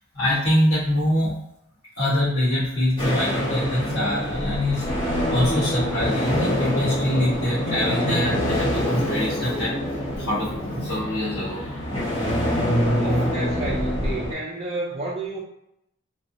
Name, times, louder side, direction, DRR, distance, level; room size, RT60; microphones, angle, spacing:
voice 1, 0.1-1.3 2.0-4.9 5.3-9.7 10.2-11.6 13.1-13.3, left 1 dB, 70° left, -10 dB, 1.4 m, -24 dB
sound 1, 3.0-14.3, equal, 20° left, 0.9 m, -25 dB
voice 2, 12.9-15.4, right 2 dB, 30° right, -5 dB, 0.4 m, -31 dB
3.2 x 2.0 x 2.8 m, 0.81 s
head